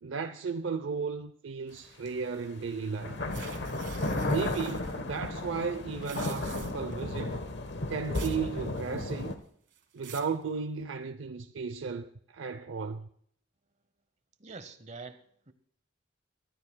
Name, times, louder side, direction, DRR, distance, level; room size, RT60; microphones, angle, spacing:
voice 1, 0.0-3.2 4.3-7.4 7.9-9.4 9.9-13.1, right 5 dB, 75° right, 0.6 m, -35 dB
sound 1, 2.1-2.2 2.9-9.4, left 2 dB, 60° left, 1.1 m, -34 dB
sound 2, 3.3-4.9 5.9-6.9 8.1-8.5 8.8-9.3 9.7-10.4, right 9 dB, 60° right, 1.4 m, -48 dB
voice 2, 14.4-15.5, right 4 dB, 35° right, 0.9 m, -45 dB
23.5 x 12.5 x 2.2 m
head